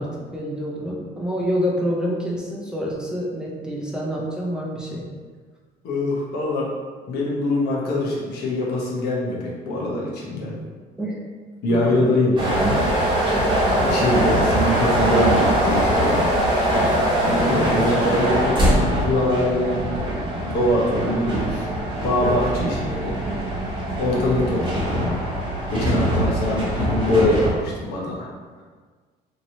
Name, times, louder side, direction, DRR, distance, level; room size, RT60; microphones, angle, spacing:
voice 1, 0.0-5.0 11.0-11.2 11.7-12.1 13.9-14.8 17.6-18.0 22.6-22.8 24.5-24.7, equal, 5° right, -4 dB, 0.5 m, -28 dB
voice 2, 5.8-6.7 7.1-10.6 11.6-12.8 13.8-16.3 17.2-19.8 20.4-21.7 22.0-23.2 24.0-25.3 25.7-28.3, left 1 dB, 75° left, -4 dB, 0.9 m, -23 dB
sound 1, 12.4-27.5, right 1 dB, 30° right, 1.0 m, -22 dB
2.9 x 2.9 x 2.7 m, 1.5 s
cardioid pair, 110°, 17 cm